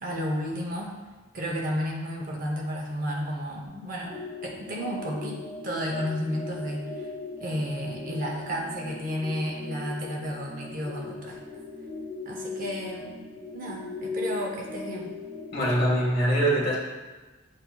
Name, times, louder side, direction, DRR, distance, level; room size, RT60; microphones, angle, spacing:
voice 1, 0.0-1.0 1.3-4.1 4.4-7.1 7.4-11.4 12.2-13.2 13.5-15.1, equal, 45° right, -1 dB, 0.6 m, -32 dB
sound 1, 4.1-15.9, left 3 dB, 80° right, 1.4 m, -38 dB
voice 2, 15.5-16.8, right 1 dB, 45° left, -5 dB, 1.2 m, -23 dB
7.3 x 2.7 x 2.2 m, 1.3 s
head